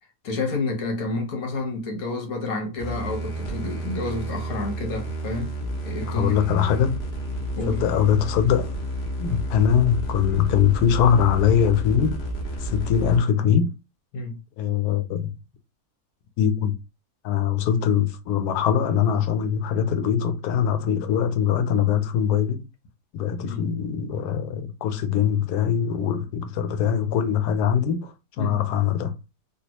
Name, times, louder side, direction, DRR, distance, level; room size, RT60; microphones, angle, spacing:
voice 1, 0.2-5.5 5.8-6.4 7.6-7.8 14.1-14.4 23.4-23.6 28.4-28.6, left 3 dB, 70° left, 1.4 m, -29 dB
sound 1, 2.8-13.2, right 1 dB, 50° left, 1.1 m, -31 dB
voice 2, 6.1-7.0 7.7-8.8 9.2-12.2 12.6-13.7 14.6-15.3 16.4-16.8 17.2-22.6 23.1-28.1 28.4-29.1, left 8 dB, 90° left, 1.1 m, -22 dB
3.5 x 2.5 x 2.8 m
omnidirectional pair, 1.6 m